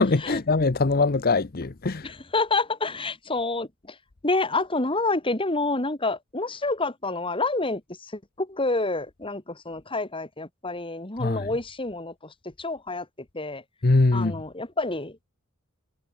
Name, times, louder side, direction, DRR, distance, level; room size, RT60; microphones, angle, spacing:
voice 1, 0.0-2.1 11.2-11.5 13.8-14.4, left 3 dB, 45° left, 0.8 m, -22 dB
voice 2, 2.0-4.0 4.2-13.1 13.3-13.6 14.1-15.2, left 3 dB, 25° left, 2.5 m, -28 dB
head